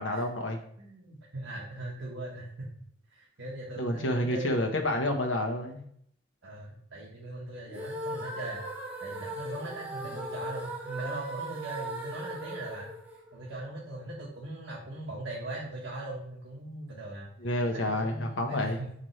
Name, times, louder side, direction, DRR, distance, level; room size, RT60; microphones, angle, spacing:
voice 1, 0.0-0.6 3.8-5.8 17.4-18.8, left 1 dB, 80° left, 4 dB, 1.2 m, -29 dB
voice 2, 0.8-2.7 3.1-5.1 6.4-8.6 9.0-12.9 13.3-17.3 17.7-18.9, right 1 dB, 80° right, -4 dB, 1.3 m, -40 dB
sound 1, 7.7-13.8, right 1 dB, 10° right, 1.2 m, -38 dB
5.9 x 5.2 x 3.2 m, 0.67 s
head